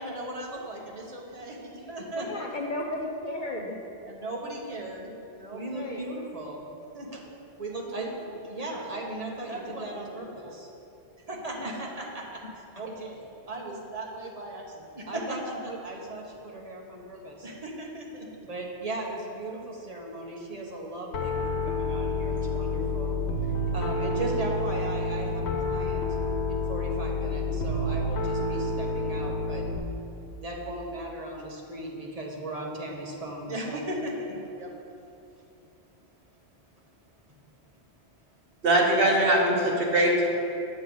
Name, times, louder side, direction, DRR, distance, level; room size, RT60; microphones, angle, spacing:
voice 1, 0.0-2.4 4.1-5.1 5.4-7.3 7.6-10.7 11.3-13.2 13.5-26.0 26.5-29.6 30.4-34.7, right 1 dB, 35° right, -2 dB, 1.1 m, -37 dB
voice 2, 2.1-3.8 5.7-6.1 9.4-9.8 12.4-12.5, left 1 dB, 55° left, 1 dB, 0.7 m, -35 dB
Piano, 21.1-29.8, left 2 dB, 90° left, 1.0 m, -29 dB
voice 3, 38.6-40.3, right 1 dB, 60° right, -1 dB, 1.2 m, -21 dB
7.8 x 7.2 x 3.9 m, 2.7 s
omnidirectional pair, 1.1 m